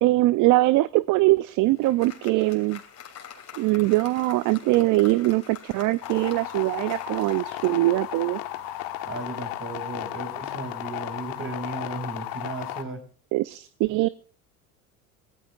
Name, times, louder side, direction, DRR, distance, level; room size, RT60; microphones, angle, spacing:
voice 1, 0.0-2.8 3.6-8.4 13.3-14.1, right 19 dB, 45° right, 17 dB, 0.6 m, -22 dB
Applause, 1.2-8.7, left 8 dB, 40° left, 3.2 m, -46 dB
sound 1, 6.0-12.8, left 12 dB, 55° left, 1.6 m, -34 dB
voice 2, 8.8-13.0, right 3 dB, 30° right, 5 dB, 5.4 m, -36 dB
24.0 x 15.5 x 2.5 m, 0.39 s
hypercardioid pair, 70°, 42 cm